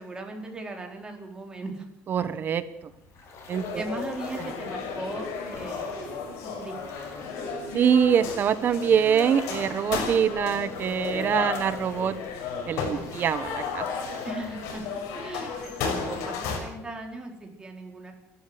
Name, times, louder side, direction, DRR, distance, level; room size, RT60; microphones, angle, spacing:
voice 1, 0.0-1.9 3.7-5.8 6.4-7.0 14.2-18.1, right 2 dB, 15° right, 2 dB, 4.4 m, -38 dB
voice 2, 2.1-2.6 3.5-3.8 4.3-4.4 7.7-12.2 12.7-13.8, right 8 dB, 40° right, 13 dB, 1.3 m, -24 dB
sound 1, 2.5-16.2, left 3 dB, 60° left, 6.5 m, -49 dB
sound 2, 3.5-16.6, left 5 dB, 85° left, 6.1 m, -33 dB
29.5 x 12.5 x 8.0 m, 0.84 s
cardioid pair, 140°, 5 cm